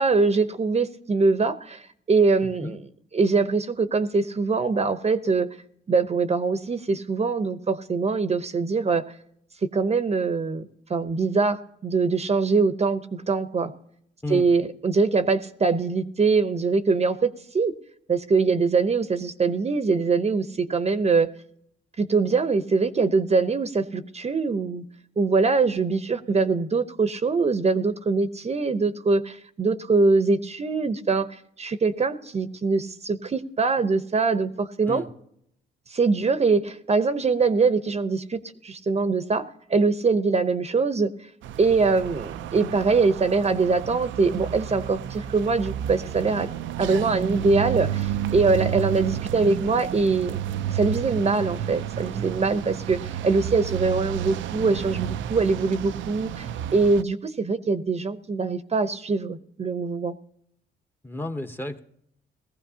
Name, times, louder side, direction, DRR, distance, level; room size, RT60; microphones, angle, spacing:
voice 1, 0.0-1.8 2.1-2.8 3.1-5.5 5.9-9.0 9.6-13.7 14.3-17.7 18.1-21.3 22.0-24.8 25.2-35.0 35.9-39.4 39.7-41.1 41.6-46.5 46.8-50.4 50.7-60.1, right 4 dB, 30° right, 11 dB, 0.8 m, -23 dB
voice 2, 2.4-2.8 14.2-14.5 34.9-35.1 61.0-61.8, left 2 dB, 10° left, 6 dB, 0.9 m, -32 dB
sound 1, 41.4-57.0, right 10 dB, 70° right, 0.5 m, -31 dB
18.5 x 15.0 x 2.8 m, 0.71 s
cardioid pair, 90°, 20 cm